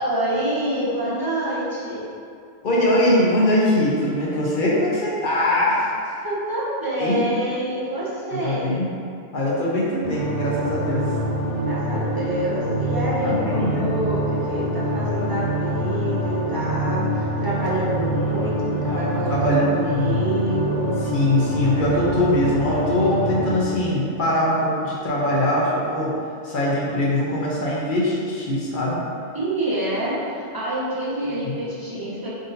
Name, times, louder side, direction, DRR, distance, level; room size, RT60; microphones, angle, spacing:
voice 1, 0.0-2.1 6.2-8.8 11.6-20.9 29.3-32.3, right 1 dB, 25° right, -7 dB, 0.7 m, -27 dB
voice 2, 2.6-5.8 7.0-7.2 8.4-8.9 9.3-11.1 13.2-13.9 18.8-20.2 21.1-26.1 26.4-29.0 31.5-31.6, left 1 dB, 55° left, -6 dB, 0.8 m, -22 dB
sound 1, 10.0-23.6, right 1 dB, 90° right, 1.8 m, -25 dB
3.7 x 2.7 x 3.9 m, 2.3 s
omnidirectional pair, 1.1 m